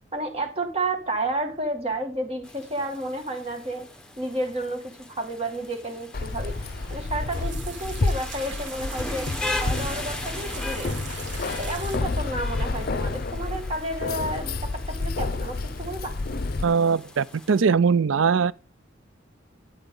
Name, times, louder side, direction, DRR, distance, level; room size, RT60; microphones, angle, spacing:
voice 1, 0.1-3.9 4.2-6.6 6.9-9.3 9.6-11.0 11.6-16.2, right 1 dB, 30° right, 2.0 m, -31 dB
Rain, 2.4-17.6, left 2 dB, 5° left, 1.2 m, -39 dB
Keys jangling, 6.1-16.6, left 3 dB, 50° left, 0.6 m, -30 dB
sound 1, 6.2-12.0, right 6 dB, 65° right, 1.6 m, -42 dB
voice 2, 16.6-18.5, right 5 dB, 85° right, 0.5 m, -21 dB
12.0 x 9.1 x 3.8 m
head